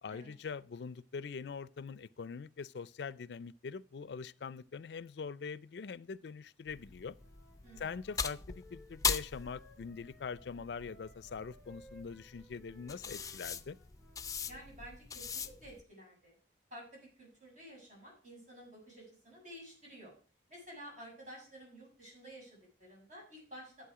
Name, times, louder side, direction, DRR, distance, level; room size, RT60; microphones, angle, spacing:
voice 1, 0.0-7.2 7.8-13.8, left 5 dB, 70° left, 0.4 m, -43 dB
sound 1, 6.7-15.8, left 6 dB, 20° left, 0.5 m, -41 dB
Wind instrument woodwind instrument, 7.2-14.6, equal, 10° right, 7.4 m, -61 dB
voice 2, 14.5-16.3 16.7-20.1 20.5-23.9, equal, 45° right, 7.1 m, -52 dB
11.5 x 8.1 x 4.8 m
head